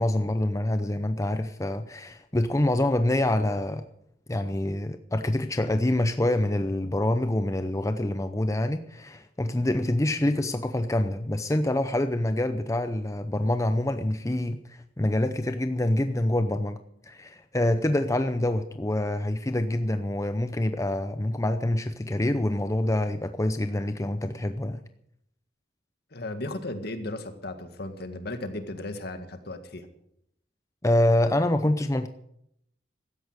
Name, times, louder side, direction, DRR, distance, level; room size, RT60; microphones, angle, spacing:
voice 1, 0.0-3.8 4.3-16.8 17.1-24.8 30.8-32.1, left 1 dB, 15° left, 9 dB, 0.6 m, -26 dB
voice 2, 26.1-29.9, left 2 dB, 60° left, 8 dB, 1.9 m, -35 dB
16.0 x 13.0 x 6.5 m, 0.74 s
head